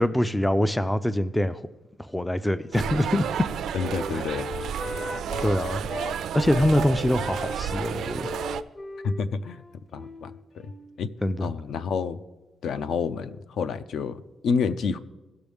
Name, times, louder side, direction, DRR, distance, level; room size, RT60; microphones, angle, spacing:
voice 1, 0.0-1.6 2.0-3.3 4.1-4.2 5.4-5.9 6.3-8.3 11.2-11.5, left 1 dB, 5° left, 13 dB, 0.3 m, -24 dB
Wind instrument woodwind instrument, 2.2-6.2 6.5-11.0, left 2 dB, 30° left, 0.7 m, -38 dB
sound 1, 2.7-8.6, right 8 dB, 70° right, 0.4 m, -31 dB
voice 2, 3.7-4.5 9.0-9.6 9.9-10.7 11.0-11.1 11.4-12.2 12.6-15.0, left 5 dB, 65° left, 13 dB, 0.5 m, -29 dB
17.5 x 6.2 x 3.5 m, 1.1 s
cardioid pair, 155°, 0 cm